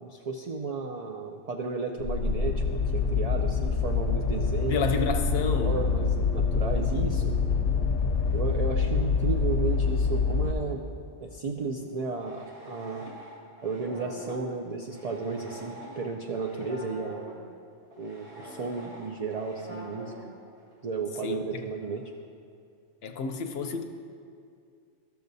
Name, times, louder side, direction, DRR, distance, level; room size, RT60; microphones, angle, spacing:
voice 1, 0.0-4.9 5.6-7.3 8.3-10.8 11.2-13.1 13.6-17.3 18.0-20.1 20.8-22.0, right 4 dB, 90° right, 2 dB, 0.3 m, -33 dB
sound 1, 2.0-10.5, left 5 dB, 85° left, 1.0 m, -26 dB
voice 2, 4.7-5.9 21.2-21.7 23.0-23.8, left 4 dB, 65° left, 5 dB, 0.7 m, -30 dB
sound 2, 11.8-17.5 17.9-20.9 21.1-21.2 21.8-22.1, equal, 55° right, 1.9 m, -45 dB
13.5 x 6.8 x 2.6 m, 2.4 s
omnidirectional pair, 1.2 m